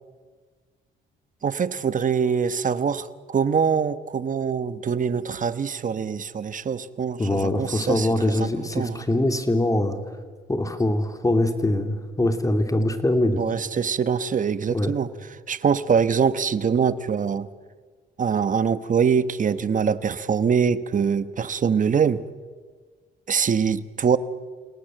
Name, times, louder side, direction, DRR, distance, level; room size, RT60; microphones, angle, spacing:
voice 1, 1.4-8.1 8.4-8.5 8.7-9.0 13.4-15.1 15.5-17.5 18.2-22.2 23.3-24.2, right 6 dB, 40° right, 14 dB, 1.2 m, -23 dB
voice 2, 7.2-10.0 10.5-13.4 14.7-14.9, left 1 dB, 15° left, 7 dB, 2.9 m, -23 dB
29.0 x 18.5 x 7.9 m, 1.5 s
cardioid pair, 90°, 20 cm